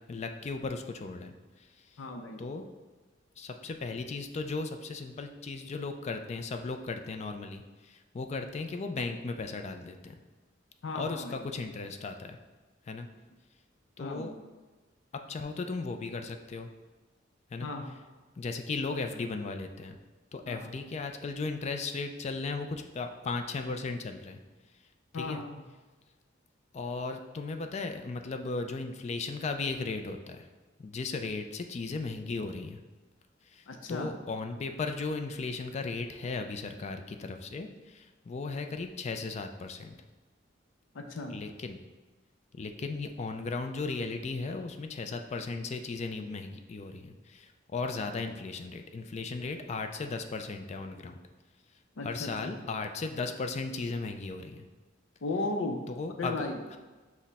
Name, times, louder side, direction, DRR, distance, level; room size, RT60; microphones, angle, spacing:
voice 1, 0.1-1.3 2.4-2.6 3.4-10.2 10.9-12.4 12.9-13.1 14.0-14.3 15.1-16.7 17.5-17.7 18.4-20.0 20.3-24.4 25.2-25.4 26.7-30.5 30.8-32.8 33.5-40.0 41.3-41.8 42.5-51.2 52.0-54.7 55.9-56.4 56.7-56.8, left 3 dB, 35° left, 6 dB, 0.3 m, -36 dB
voice 2, 2.0-2.4 10.8-11.4 14.0-14.3 17.6-18.0 20.5-20.7 25.1-25.6 33.7-34.1 40.9-41.3 52.0-52.5 55.2-55.8 56.2-56.6, left 2 dB, 85° left, 4 dB, 0.5 m, -35 dB
6.1 x 2.1 x 4.0 m, 1.3 s
head